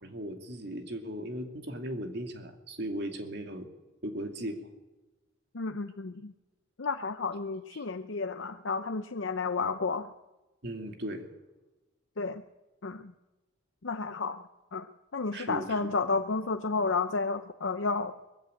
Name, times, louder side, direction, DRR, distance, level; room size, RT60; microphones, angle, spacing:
voice 1, 0.0-3.7 4.0-4.7 7.7-7.8 10.6-11.3 15.3-15.8, right 1 dB, 55° right, 4 dB, 2.5 m, -37 dB
voice 2, 5.5-6.3 6.8-10.1 12.2-12.4 12.8-13.1 13.8-14.4 14.7-14.9 15.1-18.1, left 4 dB, 70° left, 7 dB, 0.7 m, -31 dB
20.5 x 15.5 x 9.3 m, 1.1 s
head